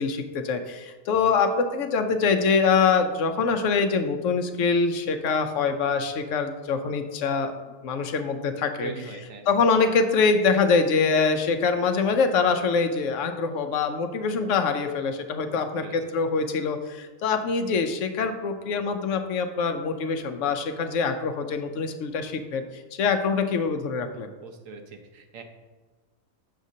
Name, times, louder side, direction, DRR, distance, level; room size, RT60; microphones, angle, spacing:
voice 1, 0.0-7.5 7.8-8.9 9.5-22.6 22.9-24.3, left 5 dB, 70° left, 7 dB, 0.9 m, -24 dB
voice 2, 8.8-9.4 15.5-16.0 24.4-25.4, right 3 dB, 80° right, 5 dB, 1.1 m, -41 dB
6.4 x 6.1 x 2.7 m, 1.3 s
omnidirectional pair, 1.4 m